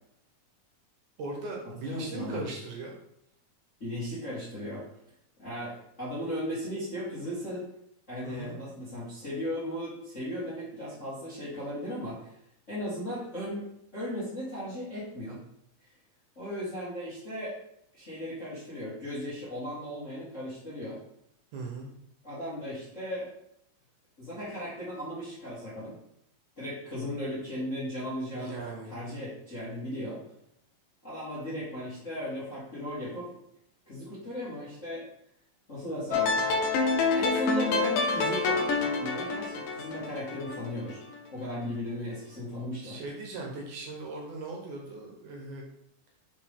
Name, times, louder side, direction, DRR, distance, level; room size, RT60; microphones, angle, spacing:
voice 1, 1.2-3.0 8.2-8.6 21.5-21.9 28.3-28.9 42.8-45.6, right 3 dB, 70° right, -1 dB, 2.2 m, -38 dB
voice 2, 1.8-2.4 3.8-4.8 5.4-7.6 8.1-12.3 12.7-13.6 13.9-15.4 16.3-17.5 17.9-21.0 22.2-23.3 24.2-25.9 26.6-28.6 28.8-30.2 31.0-33.3 33.9-35.0 35.7-36.3 37.1-41.0 41.3-43.0, equal, 35° left, -10 dB, 1.2 m, -36 dB
sound 1, 36.1-41.2, left 4 dB, 80° left, 2.3 m, -28 dB
5.2 x 5.1 x 3.6 m, 0.77 s
omnidirectional pair, 4.1 m